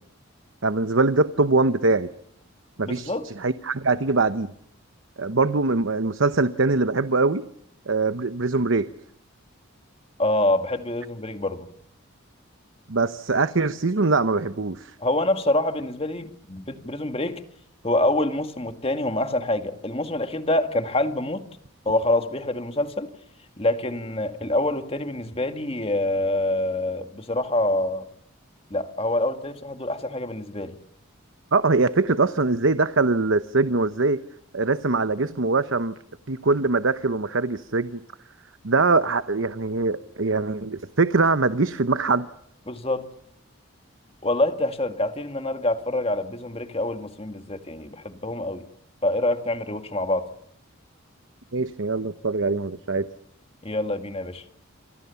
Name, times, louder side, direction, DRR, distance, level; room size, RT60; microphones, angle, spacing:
voice 1, 0.6-2.1 2.8-4.5 5.2-7.5 7.9-8.9 12.9-14.9 31.5-34.2 34.5-35.9 36.3-38.0 38.6-42.3 51.5-53.1, right 3 dB, 65° right, 1.0 m, -22 dB
voice 2, 2.8-3.3 10.2-11.7 15.0-17.4 17.8-21.5 21.9-23.1 23.6-28.1 28.7-30.8 42.7-43.1 44.2-48.7 49.0-50.3 53.6-54.4, left 1 dB, 25° left, 2.0 m, -26 dB
28.5 x 25.0 x 7.1 m
head